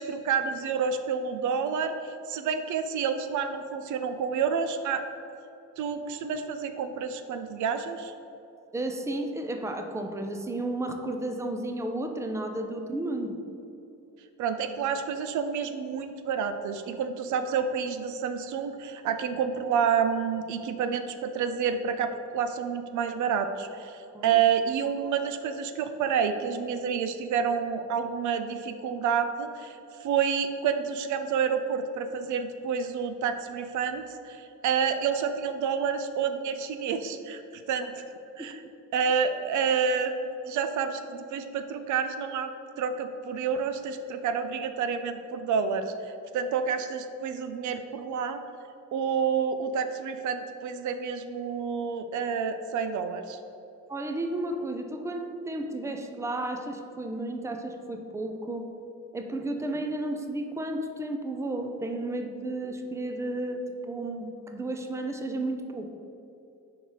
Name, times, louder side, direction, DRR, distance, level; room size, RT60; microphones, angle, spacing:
voice 1, 0.0-5.0 5.8-8.1 14.4-38.0 38.4-38.6 38.9-42.5 42.8-48.4 48.9-53.4, right 6 dB, 75° right, 9 dB, 0.5 m, -29 dB
voice 2, 8.7-13.4 24.1-24.4 38.4-38.5 53.9-58.7 59.1-65.9, right 1 dB, 10° right, 5 dB, 0.5 m, -33 dB
5.3 x 4.7 x 3.9 m, 2.8 s
cardioid pair, 90°, 30 cm